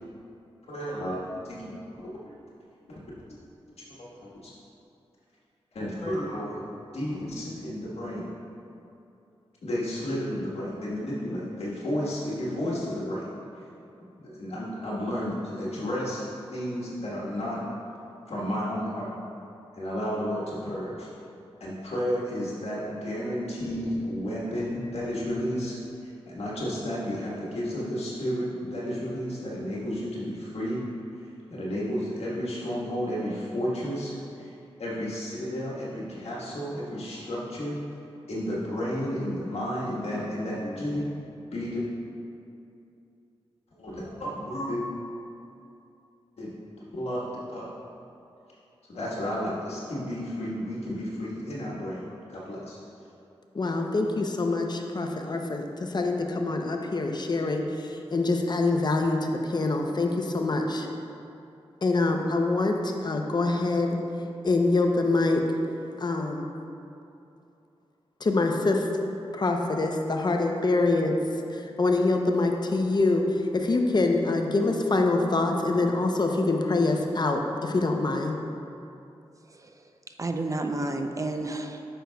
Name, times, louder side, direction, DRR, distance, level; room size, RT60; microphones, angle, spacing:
voice 1, 0.7-1.2 1.4-1.7 2.2-2.3 4.0-4.5 5.7-6.7 6.9-8.3 9.6-13.3 14.2-16.2 16.5-17.6 18.3-19.1 19.7-21.1 21.6-25.8 26.0-30.8 31.2-34.5 34.8-37.7 38.3-41.0 41.5-41.9 43.8-44.8 46.4-46.6 46.9-47.2 47.5-47.7 48.9-52.8, equal, 70° left, -6 dB, 1.4 m, -32 dB
voice 2, 53.5-60.9 61.8-64.0 64.4-65.4 66.0-66.5 68.2-68.9 69.3-71.2 71.5-73.2 73.5-78.4, left 3 dB, 40° left, 3 dB, 0.6 m, -25 dB
voice 3, 79.5-81.8, right 2 dB, 30° right, 5 dB, 0.5 m, -32 dB
9.0 x 6.4 x 2.3 m, 2.7 s
cardioid pair, 60°, 11 cm